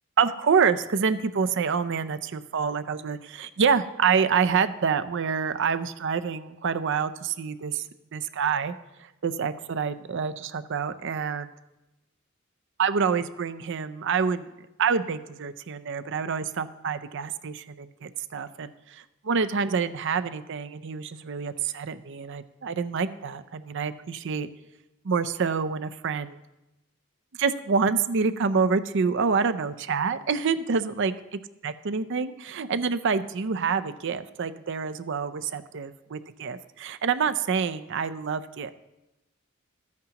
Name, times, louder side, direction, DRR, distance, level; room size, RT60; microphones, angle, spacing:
voice 1, 0.2-7.8 8.1-8.7 9.2-11.5 12.8-14.5 14.8-24.5 25.0-26.4 27.4-31.1 31.6-38.7, right 6 dB, 60° right, 12 dB, 0.5 m, -27 dB
14.5 x 9.4 x 2.9 m, 0.97 s
head